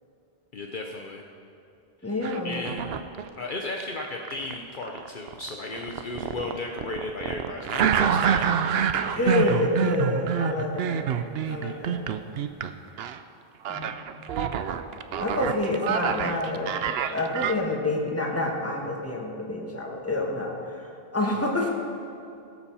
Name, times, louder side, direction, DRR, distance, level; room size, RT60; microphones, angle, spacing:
voice 1, 0.5-1.2 2.0-2.1 2.4-3.0 3.4-9.5 11.4-11.8 21.4-21.5, left 2 dB, 55° left, 1 dB, 0.9 m, -36 dB
voice 2, 2.0-2.6 9.1-11.1 11.5-12.1 13.7-13.9 15.2-16.8 17.1-21.7, left 2 dB, 15° left, -1 dB, 1.6 m, -28 dB
sound 1, 2.2-3.3 3.8-12.7 13.0-13.2 13.6-17.5, right 8 dB, 80° right, 0.8 m, -27 dB
18.5 x 7.2 x 5.6 m, 2.6 s
omnidirectional pair, 1.0 m